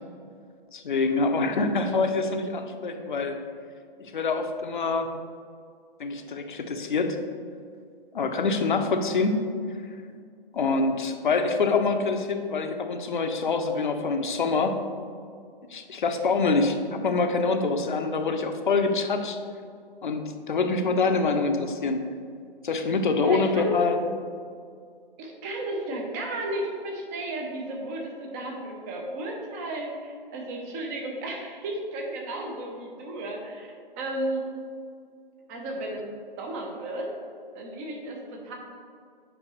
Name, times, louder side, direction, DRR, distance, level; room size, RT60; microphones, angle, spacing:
voice 1, 0.7-3.4 4.0-5.1 6.0-7.2 8.1-9.4 10.5-14.8 15.7-19.4 20.0-22.0 22.6-24.0, left 4 dB, 55° left, 6 dB, 0.8 m, -25 dB
voice 2, 23.1-23.8 25.2-34.4 35.5-36.0 36.4-37.1 37.5-38.5, right 1 dB, 15° right, 0 dB, 0.7 m, -33 dB
8.0 x 5.2 x 3.1 m, 2.2 s
figure-of-eight pair, 135°, 29 cm